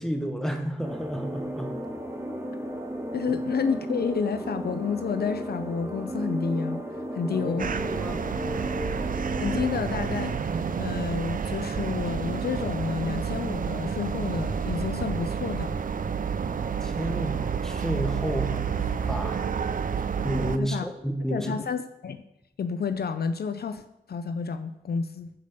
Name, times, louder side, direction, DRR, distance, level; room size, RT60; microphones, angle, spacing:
voice 1, 0.0-1.7 7.3-7.6 7.9-8.2 16.5-19.5 20.2-21.6, equal, 5° left, 4 dB, 1.5 m, -31 dB
sound 1, 0.8-11.0, equal, 15° right, 1.5 m, -34 dB
voice 2, 3.1-6.8 7.1-7.7 9.0-15.8 20.6-20.9 21.3-22.2 22.6-23.8 24.1-25.3, left 5 dB, 65° left, 10 dB, 0.6 m, -30 dB
sound 2, 7.6-20.6, right 6 dB, 50° right, 0.5 m, -30 dB
10.5 x 5.2 x 6.7 m, 0.86 s
wide cardioid pair, 85°, 18 cm